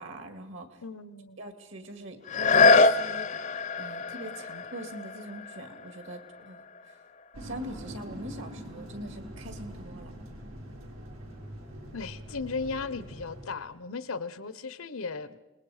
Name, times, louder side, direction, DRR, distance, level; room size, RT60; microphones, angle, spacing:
voice 1, 0.0-0.8 1.4-3.5 3.8-7.0 7.4-10.1, right 1 dB, 65° right, 7 dB, 2.2 m, -43 dB
voice 2, 0.8-1.4 11.9-15.4, left 4 dB, 90° left, 14 dB, 0.9 m, -36 dB
sound 1, 2.2-7.9 8.5-8.6, left 4 dB, 35° left, 0.6 m, -26 dB
sound 2, 7.3-13.5, equal, 90° right, 4.2 m, -43 dB
27.0 x 20.0 x 5.0 m, 1.1 s
head